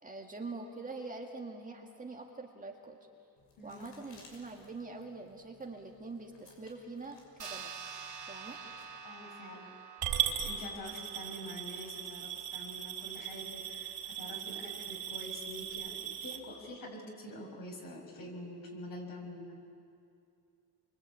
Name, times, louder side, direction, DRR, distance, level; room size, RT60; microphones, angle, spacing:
voice 1, 0.0-3.0 3.6-7.7 8.3-8.6, right 3 dB, 20° right, 1 dB, 1.9 m, -44 dB
sound 1, 3.4-9.0, left 3 dB, 80° left, 6.2 m, -60 dB
sound 2, 7.4-12.3, right 6 dB, 45° right, 1.4 m, -48 dB
voice 2, 9.0-9.7 10.4-19.6, left 1 dB, 55° left, 1 dB, 6.4 m, -46 dB
Coin (dropping) / Glass, 10.0-16.4, right 9 dB, 65° right, 4.5 m, -38 dB
27.5 x 24.0 x 8.7 m, 2.5 s
cardioid pair, 155°, 42 cm